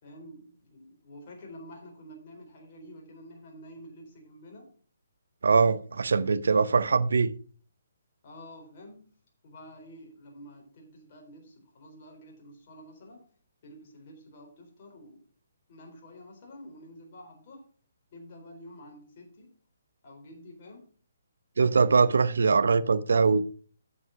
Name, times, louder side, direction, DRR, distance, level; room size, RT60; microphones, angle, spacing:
voice 1, 0.0-4.7 8.2-9.1 9.4-13.2 13.6-15.2 15.7-17.7 18.1-19.5 20.0-20.9, equal, 45° left, 4.0 m, -49 dB
voice 2, 5.4-7.3 21.6-23.4, right 4 dB, 70° right, 0.8 m, -22 dB
8.4 x 7.7 x 5.9 m
figure-of-eight pair, 140°, 0 cm